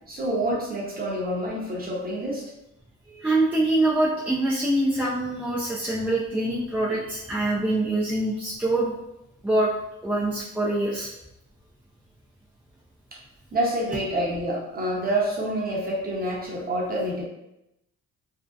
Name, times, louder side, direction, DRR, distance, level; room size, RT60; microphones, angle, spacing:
voice 1, 0.1-2.5 13.5-17.2, right 1 dB, 30° right, -3 dB, 0.8 m, -27 dB
voice 2, 3.1-8.9 9.4-9.7 10.0-11.1, right 1 dB, 5° right, -6 dB, 0.3 m, -24 dB
2.6 x 2.0 x 2.3 m, 0.88 s
cardioid pair, 90°, 30 cm